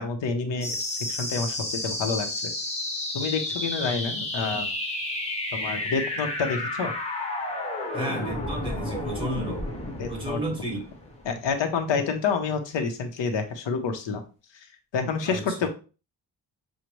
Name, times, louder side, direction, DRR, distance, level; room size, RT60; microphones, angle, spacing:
voice 1, 0.0-2.5 3.1-4.7 5.5-6.9 10.0-10.4 11.2-14.2 14.9-15.7, left 5 dB, 80° left, 0.8 m, -28 dB
sound 1, 0.6-11.6, left 1 dB, 15° left, 1.0 m, -31 dB
voice 2, 7.9-9.7 10.1-10.8 15.2-15.7, right 1 dB, 10° right, 1.5 m, -32 dB
6.3 x 2.1 x 3.0 m
wide cardioid pair, 145°, 43 cm